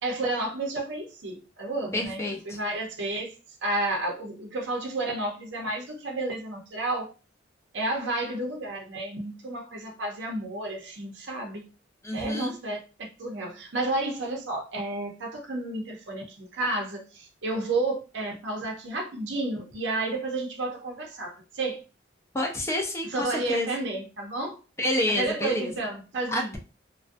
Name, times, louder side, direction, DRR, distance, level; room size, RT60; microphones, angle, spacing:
voice 1, 0.0-3.4 3.6-7.1 7.7-11.7 12.1-12.8 13.2-21.8 23.1-24.6 25.1-26.6, right 2 dB, 70° right, 0.6 m, -31 dB
voice 2, 1.9-2.6 12.0-12.5 22.3-23.7 24.8-25.7 26.3-26.6, left 1 dB, 15° left, 0.4 m, -28 dB
2.3 x 2.1 x 2.5 m
head